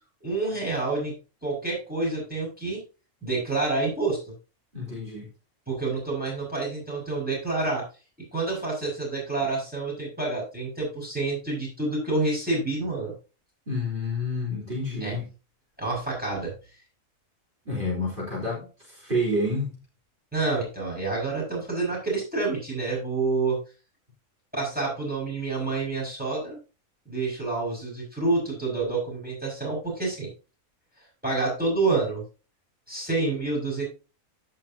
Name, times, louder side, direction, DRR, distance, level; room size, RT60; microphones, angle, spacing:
voice 1, 0.2-1.1 1.4-2.8 3.2-4.2 5.7-7.9 8.3-13.1 15.0-15.2 15.8-16.5 20.3-23.6 24.5-26.6 27.1-30.3 31.2-32.2 32.9-33.8, right 3 dB, 5° right, 5.8 m, -28 dB
voice 2, 4.7-5.3 13.7-15.2 17.7-19.7, left 1 dB, 40° right, 4.0 m, -29 dB
16.5 x 5.9 x 2.8 m
omnidirectional pair, 1.4 m